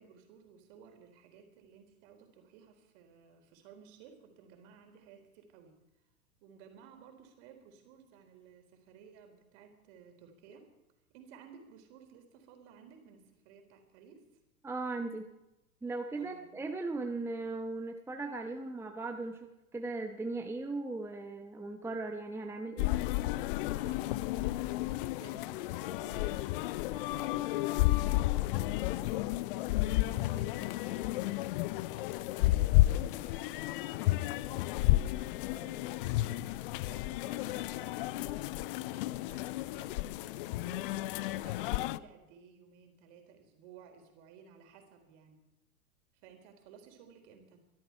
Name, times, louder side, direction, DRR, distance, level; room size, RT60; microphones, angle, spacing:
voice 1, 0.0-5.8 6.4-10.7 11.1-14.3 16.2-16.7 23.6-34.7 35.1-45.4 46.2-47.6, right 7 dB, 50° right, 5 dB, 3.8 m, -56 dB
voice 2, 14.6-15.3 15.8-22.9, right 3 dB, 5° right, 4 dB, 1.0 m, -38 dB
sound 1, 22.8-42.0, left 17 dB, 40° left, 0.5 m, -32 dB
23.5 x 12.5 x 4.6 m, 0.94 s
figure-of-eight pair, 100°, 44 cm